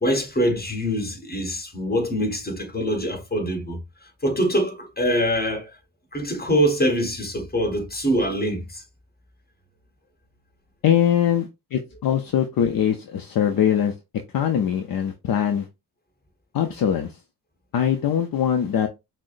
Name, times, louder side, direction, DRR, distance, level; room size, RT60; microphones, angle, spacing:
voice 1, 0.0-3.8 4.2-5.7 6.1-8.8, equal, 20° left, 1.7 m, -24 dB
voice 2, 10.8-13.9 14.3-15.7 16.5-17.1 17.7-18.9, left 9 dB, 50° left, 0.7 m, -22 dB
5.9 x 2.2 x 2.5 m
cardioid pair, 70°, 44 cm